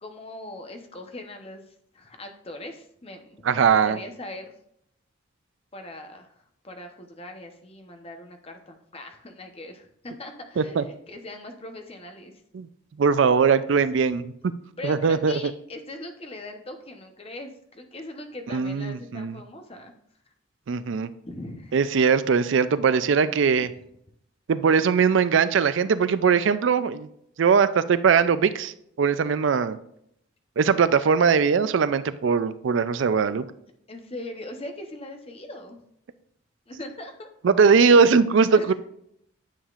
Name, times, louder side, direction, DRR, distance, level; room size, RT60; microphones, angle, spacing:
voice 1, 0.0-4.5 5.7-12.3 14.8-19.9 21.2-21.7 33.9-35.8 36.7-37.3 38.5-38.7, left 1 dB, 30° left, 5 dB, 0.9 m, -40 dB
voice 2, 3.4-4.0 10.6-10.8 12.5-12.7 13.0-14.2 14.8-15.4 18.5-19.3 20.7-21.1 21.7-23.7 24.5-27.1 27.4-29.8 30.6-33.5 37.4-38.7, right 5 dB, 60° right, 14 dB, 0.4 m, -20 dB
9.8 x 7.3 x 2.5 m, 0.72 s
head